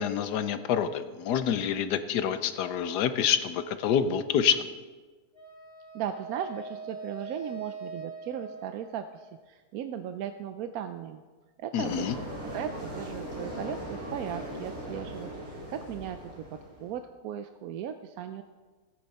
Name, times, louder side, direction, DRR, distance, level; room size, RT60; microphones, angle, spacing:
voice 1, 0.0-4.7 11.7-12.1, left 8 dB, 80° left, 11 dB, 1.3 m, -27 dB
Wind instrument woodwind instrument, 5.3-9.5, right 3 dB, 35° left, 4.0 m, -42 dB
voice 2, 5.9-11.2 11.6-12.1 12.5-18.4, right 9 dB, 70° right, 8 dB, 1.0 m, -37 dB
sound 1, 11.8-17.0, right 1 dB, 45° right, 4.9 m, -39 dB
16.5 x 9.7 x 4.2 m, 1.4 s
omnidirectional pair, 1.7 m